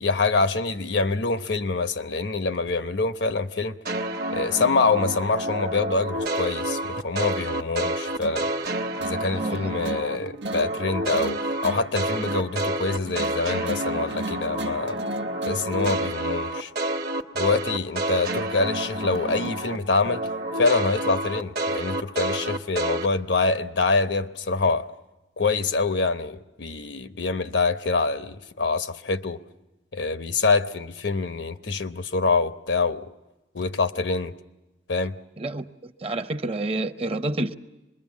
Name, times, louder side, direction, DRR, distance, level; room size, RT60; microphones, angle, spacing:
voice 1, 0.0-3.8 4.3-8.5 9.0-15.0 15.4-16.7 17.3-20.3 20.6-24.9 25.4-29.4 29.9-33.1 33.5-34.3 34.9-35.2, left 3 dB, 85° left, 0.9 m, -25 dB
sound 1, 3.8-10.2 10.4-19.8 20.0-23.1, right 1 dB, 55° right, 1.1 m, -29 dB
sound 2, 8.2-16.2, right 2 dB, 85° right, 1.0 m, -38 dB
voice 2, 9.3-9.7 35.4-37.5, right 2 dB, 35° right, 0.7 m, -29 dB
25.5 x 21.5 x 7.3 m
head